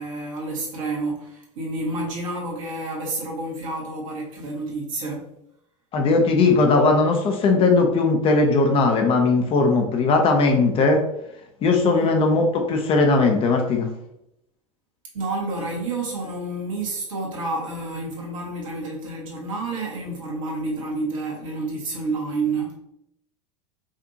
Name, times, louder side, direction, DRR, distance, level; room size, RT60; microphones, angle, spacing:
voice 1, 0.0-5.3 11.7-12.1 15.1-22.7, right 2 dB, 65° right, -2 dB, 1.4 m, -29 dB
voice 2, 5.9-11.0 11.6-13.9, left 3 dB, 30° left, 3 dB, 0.7 m, -19 dB
5.0 x 2.6 x 2.8 m, 0.80 s
figure-of-eight pair, 85°, 18 cm